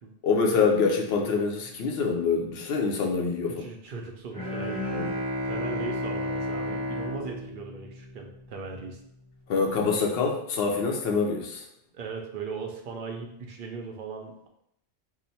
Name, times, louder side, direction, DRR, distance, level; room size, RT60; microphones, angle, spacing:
voice 1, 0.2-3.6 4.9-5.1 9.5-11.6, left 4 dB, 75° left, 1 dB, 0.8 m, -25 dB
voice 2, 3.5-4.8 5.4-9.0 11.9-14.5, right 4 dB, 60° right, 2 dB, 0.7 m, -38 dB
Bowed string instrument, 4.3-8.6, left 1 dB, 10° right, 0.8 m, -32 dB
2.9 x 2.0 x 4.0 m, 0.75 s
omnidirectional pair, 1.1 m